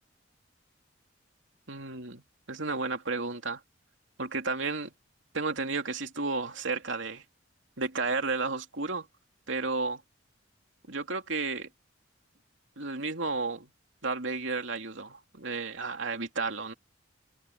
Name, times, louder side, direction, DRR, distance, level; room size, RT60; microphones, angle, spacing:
voice 1, 1.7-3.6 4.2-4.9 5.3-7.2 7.8-9.1 9.5-10.0 10.9-11.7 12.8-13.7 14.0-16.7, right 3 dB, 75° right, 2.7 m, -32 dB
head